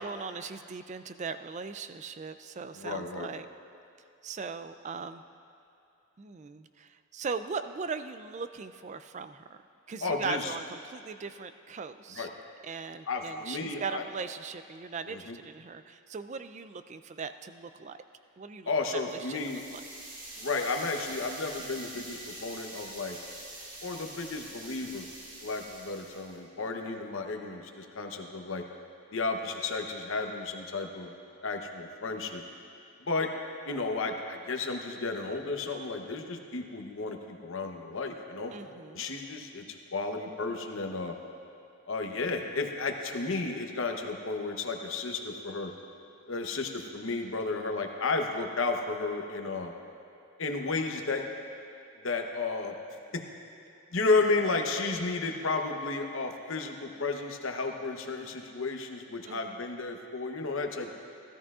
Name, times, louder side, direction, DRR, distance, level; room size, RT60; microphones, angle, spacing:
voice 1, 0.0-3.5 4.2-5.2 6.2-9.6 9.9-12.3 12.6-18.0 18.4-19.8 38.5-39.0 59.3-59.5, right 5 dB, 30° right, 11 dB, 0.3 m, -39 dB
voice 2, 2.7-3.3 10.0-10.6 12.1-12.3 13.1-14.0 15.1-15.4 18.7-19.6 20.4-23.2 23.8-25.1 25.4-28.6 29.1-31.1 31.4-32.4 33.0-33.3 33.6-38.5 38.9-41.2 41.9-45.7 46.3-49.7 50.4-51.3 52.0-52.7 53.1-53.2 53.9-60.9, left 3 dB, 60° left, 3 dB, 0.9 m, -33 dB
sound 1, 19.2-26.4, right 1 dB, 65° right, 2.3 m, -45 dB
16.5 x 13.5 x 2.4 m, 2.6 s
head